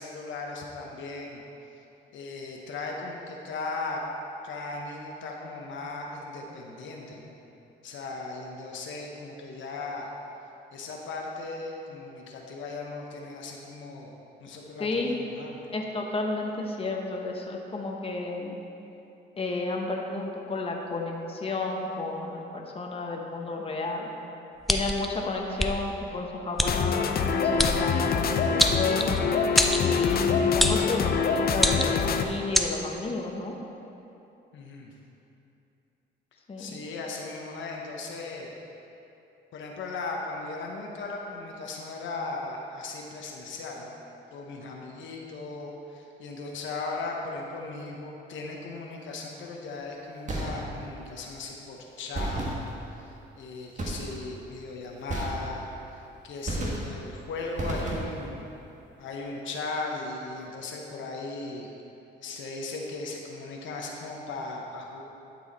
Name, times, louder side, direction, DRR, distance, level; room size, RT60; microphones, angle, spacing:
voice 1, 0.0-1.4 2.1-4.0 4.4-7.3 7.8-10.1 10.7-14.1 14.4-15.6 34.5-34.9 36.6-38.5 39.5-43.9 44.3-52.6 52.9-58.5 59.0-61.7 62.2-65.0, left 3 dB, 75° left, 0 dB, 1.0 m, -37 dB
voice 2, 14.8-15.2 15.7-18.6 19.4-24.1 24.7-29.2 29.8-33.5 36.5-36.8, left 3 dB, 30° left, 0 dB, 1.0 m, -32 dB
sound 1, 24.7-25.1 25.6-25.7 26.6-26.7 27.6-27.8 28.6-29.2 29.6-29.8 30.6-30.9 31.6-32.0 32.5-32.7, equal, ahead, 0.5 m, -24 dB
sound 2, 26.6-32.2, left 6 dB, 50° left, 0.5 m, -25 dB
sound 3, 50.3-51.0 52.1-53.1 53.8-54.4 55.1-55.9 56.5-57.2 57.6-58.4, right 2 dB, 40° right, 1.4 m, -33 dB
11.5 x 4.7 x 4.1 m, 2.9 s
cardioid pair, 90°, 20 cm